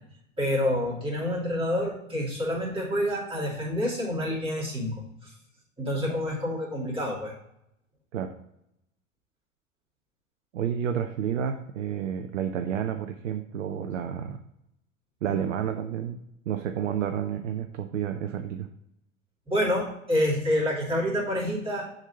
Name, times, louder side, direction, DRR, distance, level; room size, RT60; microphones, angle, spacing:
voice 1, 0.4-4.9 5.2-5.3 5.8-7.3 19.5-21.9, left 1 dB, 15° right, -6 dB, 2.8 m, -28 dB
voice 2, 10.5-14.4 15.2-16.2 16.5-18.7, right 9 dB, 65° right, 7 dB, 0.7 m, -30 dB
7.1 x 3.9 x 4.4 m, 0.81 s
figure-of-eight pair, 95°, 39 cm